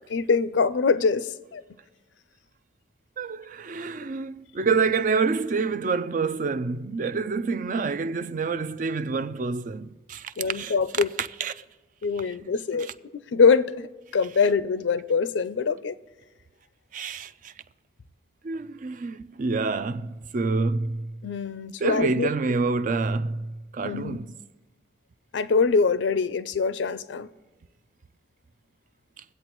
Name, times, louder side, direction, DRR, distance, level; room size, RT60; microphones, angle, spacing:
voice 1, 0.1-1.6 10.4-11.1 12.0-13.9 14.1-16.0 21.2-22.3 23.8-24.2 25.3-27.3, left 5 dB, 80° left, 0.4 m, -24 dB
voice 2, 3.2-11.6 12.2-12.9 16.9-17.5 18.4-21.1 21.8-24.4 29.2-29.3, right 4 dB, 45° right, 0.4 m, -28 dB
23.0 x 8.1 x 3.0 m
head